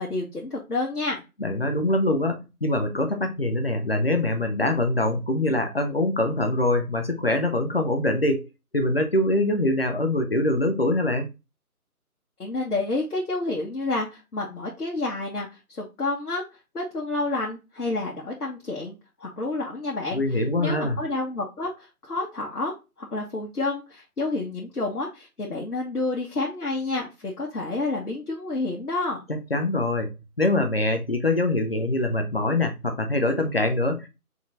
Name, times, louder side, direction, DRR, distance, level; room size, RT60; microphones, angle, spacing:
voice 1, 0.0-1.2 12.4-16.4 16.7-20.2 20.6-29.2, left 2 dB, 85° left, 1.4 m, -29 dB
voice 2, 1.4-8.5 8.7-11.3 20.1-21.0 29.3-30.1 30.4-34.1, left 1 dB, 40° left, 0.7 m, -24 dB
4.5 x 3.9 x 2.5 m
figure-of-eight pair, 165°, 45 cm